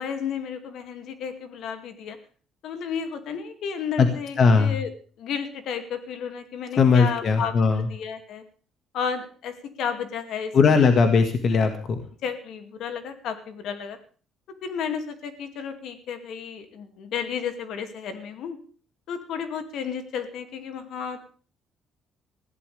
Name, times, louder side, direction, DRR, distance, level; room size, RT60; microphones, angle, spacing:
voice 1, 0.0-2.2 2.6-4.9 5.2-8.4 8.9-10.5 12.2-14.0 14.6-18.6 19.1-21.2, left 7 dB, 60° left, 8 dB, 2.4 m, -32 dB
voice 2, 4.4-4.7 6.8-7.9 10.5-12.0, left 5 dB, 40° left, 6 dB, 1.8 m, -19 dB
21.0 x 15.5 x 3.4 m, 0.42 s
cardioid pair, 170°, 0 cm